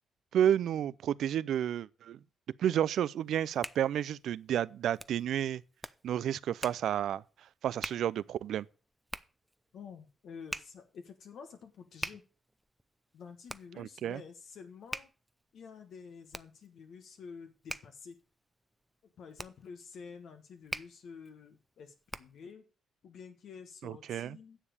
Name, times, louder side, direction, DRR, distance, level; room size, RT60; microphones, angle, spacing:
voice 1, 0.3-2.2 2.6-5.6 6.0-8.7 13.8-14.2 23.8-24.4, right 10 dB, 70° right, 0.5 m, -31 dB
Hands, 3.2-22.5, equal, 5° right, 0.5 m, -46 dB
voice 2, 9.7-12.2 13.1-15.1 15.5-18.2 19.0-22.7 23.0-24.6, left 6 dB, 65° left, 1.4 m, -49 dB
9.9 x 7.2 x 6.5 m
cardioid pair, 90°, 0 cm